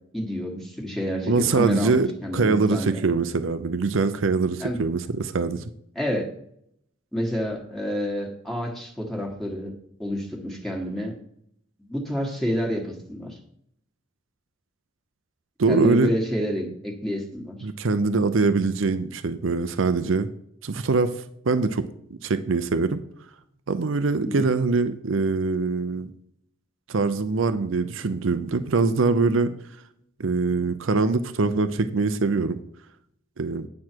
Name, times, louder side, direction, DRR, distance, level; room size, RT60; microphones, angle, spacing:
voice 1, 0.1-3.0 4.6-4.8 5.9-6.3 7.1-11.1 11.8-13.4 15.7-17.5 24.2-24.5, equal, ahead, -1 dB, 1.5 m, -29 dB
voice 2, 1.3-2.1 2.3-5.7 15.6-16.1 17.6-20.3 20.6-21.1 21.5-21.9 22.2-23.0 23.7-26.1 26.9-29.5 30.2-32.6 33.4-33.7, right 4 dB, 75° right, 11 dB, 0.6 m, -23 dB
9.6 x 6.3 x 4.5 m, 0.70 s
head